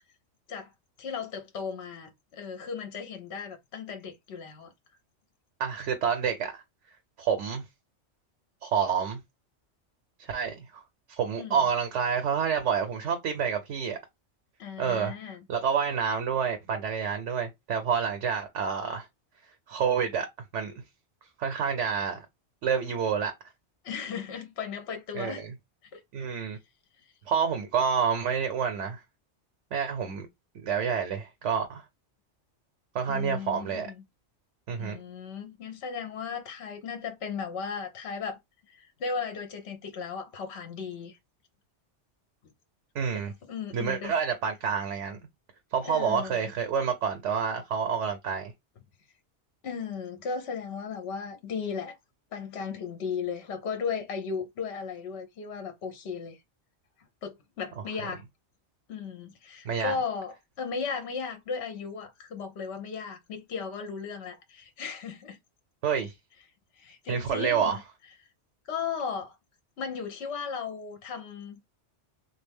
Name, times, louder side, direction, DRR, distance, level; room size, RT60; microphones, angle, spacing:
voice 1, 1.0-4.7 11.4-11.7 14.6-15.4 23.8-25.4 25.9-26.0 33.1-34.0 34.8-38.4 38.7-41.2 43.1-44.2 45.8-46.5 49.6-52.0 52.3-56.4 57.2-58.2 58.9-65.4 66.8-67.8 68.6-69.4 69.8-71.7, left 6 dB, 65° left, 1.0 m, -36 dB
voice 2, 5.6-6.6 7.2-7.6 8.6-9.2 10.2-10.8 11.1-14.0 14.8-15.1 15.5-19.1 19.7-20.3 20.5-20.7 21.4-22.2 22.6-23.3 25.1-25.5 26.1-26.6 27.3-29.0 29.7-30.3 30.5-31.8 32.9-33.9 34.7-35.0 42.9-43.3 43.7-45.2 45.7-48.5 58.0-58.1 59.6-59.9 65.8-66.1 67.1-67.8, right 7 dB, 85° right, 1.0 m, -28 dB
3.3 x 2.4 x 3.5 m
omnidirectional pair, 1.2 m